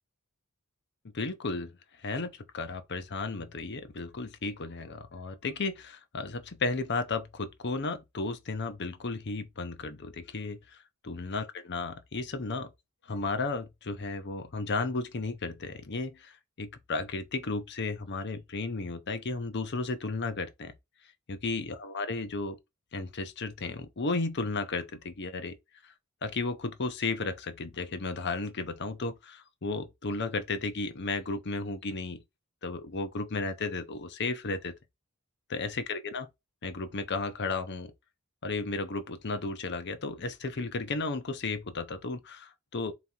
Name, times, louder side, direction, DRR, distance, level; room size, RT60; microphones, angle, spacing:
voice 1, 1.1-1.7 2.0-10.8 11.0-12.7 13.1-20.7 21.3-22.6 22.9-25.6 25.8-25.9 26.2-32.2 32.6-34.7 35.5-36.3 36.6-37.9 38.4-42.9, left 3 dB, 50° left, 0.8 m, -34 dB
4.0 x 3.0 x 3.8 m
head